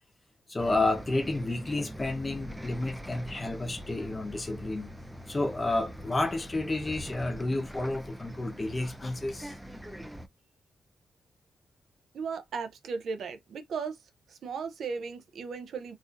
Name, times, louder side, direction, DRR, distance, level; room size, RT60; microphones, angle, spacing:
voice 1, 0.5-4.9 5.3-9.5, left 2 dB, 25° left, 0.8 m, -31 dB
Bus, 0.6-10.3, equal, 5° right, 0.4 m, -43 dB
voice 2, 12.1-14.0 14.3-15.9, right 5 dB, 75° right, 0.6 m, -36 dB
4.0 x 2.6 x 2.4 m
wide cardioid pair, 135°, 0 cm